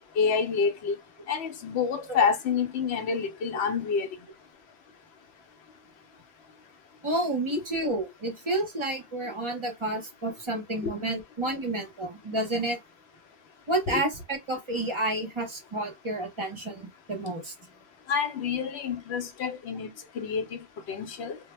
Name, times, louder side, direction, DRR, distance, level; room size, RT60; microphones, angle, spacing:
voice 1, 0.2-1.0 1.3-4.1 10.8-10.9 13.9-14.0 18.1-21.4, left 6 dB, 75° left, 0.8 m, -28 dB
voice 2, 7.0-12.8 13.7-17.5, right 1 dB, 35° right, 0.6 m, -30 dB
2.2 x 2.1 x 3.0 m
omnidirectional pair, 1.1 m